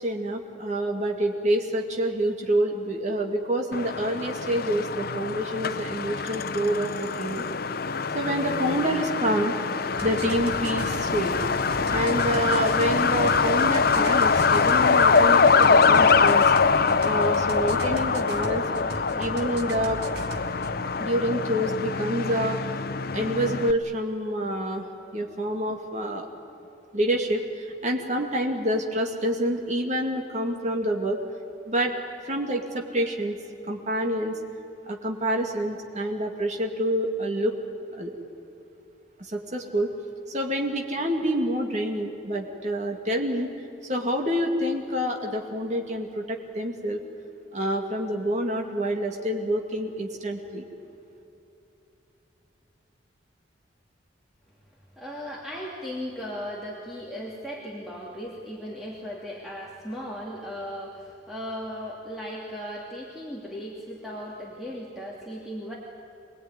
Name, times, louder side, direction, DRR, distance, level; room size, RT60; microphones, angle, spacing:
voice 1, 0.0-7.4 8.1-9.5 10.0-11.3 11.9-16.5 17.0-18.6 19.2-20.0 21.0-22.6 23.1-24.9 25.1-26.3 26.9-31.2 31.7-31.9 32.3-33.4 33.7-34.4 34.8-37.5 38.0-38.2 39.3-39.9 40.3-43.5 43.8-47.0 47.5-50.6, right 1 dB, 40° right, 2 dB, 2.3 m, -27 dB
Truck, 3.7-23.7, left 5 dB, 55° left, 0.7 m, -23 dB
sound 1, 10.0-20.7, right 1 dB, 60° right, 1.9 m, -38 dB
voice 2, 55.0-65.8, equal, ahead, -5 dB, 2.7 m, -37 dB
25.0 x 20.0 x 9.6 m, 2.9 s
head